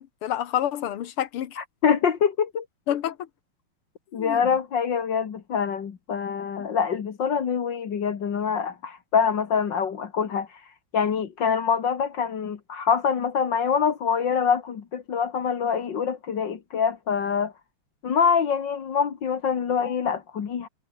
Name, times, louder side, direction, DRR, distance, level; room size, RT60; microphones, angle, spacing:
voice 1, 0.0-1.6 2.9-3.3 4.2-4.5 6.6-6.7, left 11 dB, 80° left, 2.1 m, -29 dB
voice 2, 1.6-2.6 4.1-17.5 18.0-20.7, left 6 dB, 55° left, 2.3 m, -25 dB
omnidirectional pair, 2.4 m